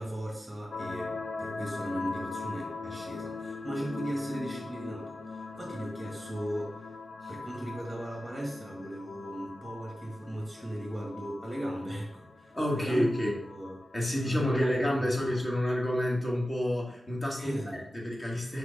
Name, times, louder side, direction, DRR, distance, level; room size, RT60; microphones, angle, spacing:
voice 1, 0.0-6.9 7.3-13.1 13.4-13.7 14.2-14.8 15.2-15.3 17.4-17.8, right 1 dB, 10° right, -2 dB, 1.6 m, -37 dB
sound 1, 0.7-17.3, left 4 dB, 50° left, 0.5 m, -42 dB
voice 2, 12.5-13.3 13.9-18.6, left 1 dB, 20° left, -2 dB, 1.5 m, -29 dB
4.9 x 4.7 x 5.1 m, 0.72 s
wide cardioid pair, 155°, 0 cm